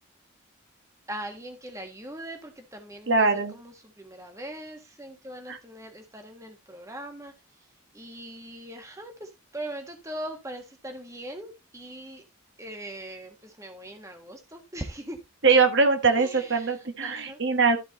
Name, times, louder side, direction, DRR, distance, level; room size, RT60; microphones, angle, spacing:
voice 1, 1.1-7.3 7.9-12.2 12.6-15.2 16.1-17.4, right 1 dB, 15° right, 1.4 m, -40 dB
voice 2, 3.1-3.5 5.5-5.6 15.4-17.8, right 4 dB, 55° right, 1.3 m, -22 dB
13.0 x 4.6 x 4.0 m
head